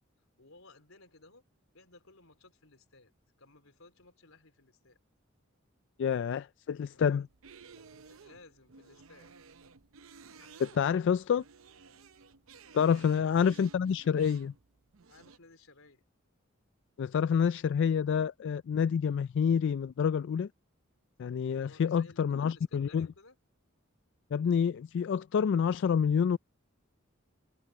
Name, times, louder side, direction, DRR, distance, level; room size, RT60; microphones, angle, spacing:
voice 1, 0.4-1.4 1.7-5.0 6.9-7.3 7.9-9.3 12.7-13.3 15.1-16.0 21.4-23.4, left 3 dB, 85° left, 4.1 m, -58 dB
voice 2, 6.0-7.2 10.6-11.4 12.7-14.5 17.0-20.5 21.2-23.1 24.3-26.4, left 7 dB, 60° left, 0.3 m, -28 dB
sound 1, 7.3-15.4, right 5 dB, 85° right, 0.7 m, -55 dB
head